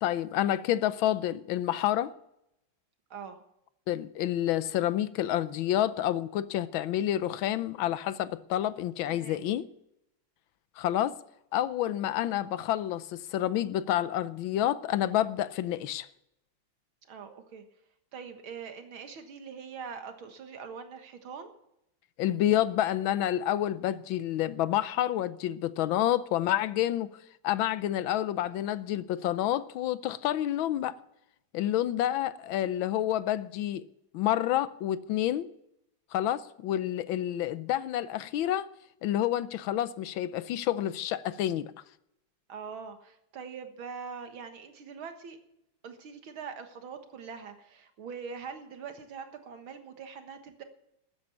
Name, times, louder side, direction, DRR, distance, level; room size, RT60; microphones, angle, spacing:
voice 1, 0.0-2.1 3.9-9.7 10.8-11.2 11.5-16.1 22.2-27.1 27.4-31.0 31.5-33.9 34.1-35.5 36.1-38.7 39.0-41.7, left 12 dB, 85° left, 1.5 m, -29 dB
voice 2, 3.1-3.4 9.1-9.4 17.1-17.7 18.1-21.5 42.5-45.4 45.8-50.6, right 6 dB, 90° right, 2.3 m, -43 dB
13.0 x 9.7 x 7.1 m
omnidirectional pair, 2.2 m